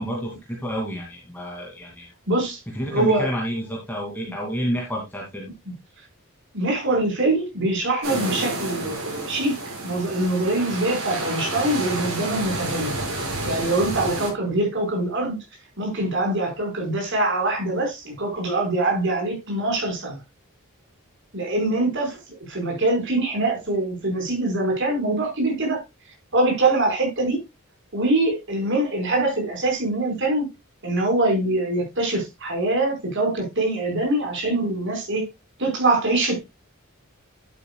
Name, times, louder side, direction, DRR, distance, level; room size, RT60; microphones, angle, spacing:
voice 1, 0.0-2.1 2.7-5.5, equal, 10° left, 2.5 m, -29 dB
voice 2, 2.3-2.6 2.9-3.3 6.5-9.6 9.8-13.0 13.4-15.4 15.8-20.2 21.3-25.8 26.3-27.4 27.9-30.5 30.8-35.3 35.6-36.4, right 2 dB, 55° right, 4.7 m, -23 dB
sound 1, 8.0-14.3, right 2 dB, 80° right, 6.1 m, -30 dB
11.0 x 9.0 x 2.3 m
head